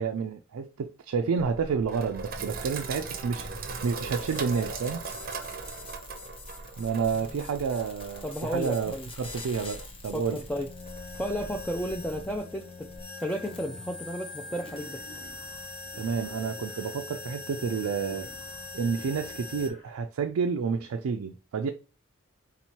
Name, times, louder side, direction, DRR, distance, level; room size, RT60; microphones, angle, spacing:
voice 1, 0.0-3.5 3.8-5.0 6.8-10.4 16.0-18.3 18.7-21.7, right 5 dB, 80° right, 0.4 m, -30 dB
Sink (filling or washing), 1.4-12.4, right 4 dB, 40° right, 0.6 m, -40 dB
sound 1, 3.5-19.7, left 3 dB, 25° left, 0.7 m, -43 dB
voice 2, 7.1-7.5 8.2-9.1 10.1-10.7 11.2-12.9 13.2-15.0, equal, 5° left, 0.3 m, -33 dB
Wild animals, 14.4-16.9 17.4-19.9, left 1 dB, 70° left, 2.4 m, -51 dB
4.4 x 3.9 x 2.8 m
head